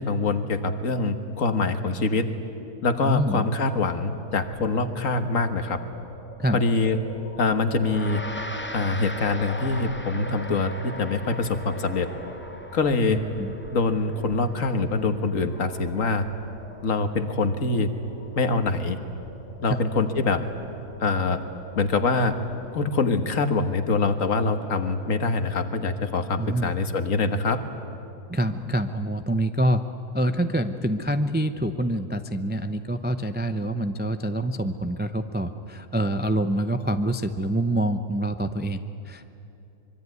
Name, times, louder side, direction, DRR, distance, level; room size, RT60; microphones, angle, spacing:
voice 1, 0.0-2.3 2.8-5.8 6.5-7.0 7.4-8.2 8.7-12.1 12.7-13.2 13.7-16.2 16.8-17.9 18.4-19.0 19.6-20.4 21.0-21.4 21.8-22.3 22.7-27.6, left 3 dB, 60° left, 8 dB, 1.8 m, -24 dB
voice 2, 3.0-3.5 6.4-6.6 13.1-13.5 19.7-19.8 26.4-26.7 28.3-29.8 30.1-39.3, right 1 dB, 15° right, 9 dB, 0.4 m, -26 dB
sound 1, 4.3-22.6, equal, 85° left, 5.4 m, -44 dB
Gong, 7.8-17.3, left 1 dB, 10° left, 0.8 m, -41 dB
25.0 x 23.0 x 9.6 m, 2.9 s
omnidirectional pair, 1.6 m